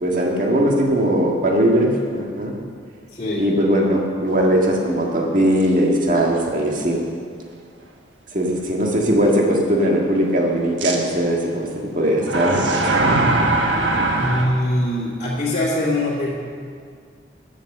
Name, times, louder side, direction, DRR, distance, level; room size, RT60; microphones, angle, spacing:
voice 1, 0.0-2.5 3.4-7.0 8.3-13.0 13.3-13.5, equal, 45° right, -1 dB, 1.8 m, -19 dB
voice 2, 3.1-3.4 14.2-16.3, left 1 dB, 35° left, -8 dB, 2.2 m, -22 dB
sound 1, 5.5-5.6 6.3-6.4 10.8-11.0 12.2-14.5, right 2 dB, 80° right, 1.4 m, -20 dB
13.0 x 7.3 x 6.8 m, 2.1 s
head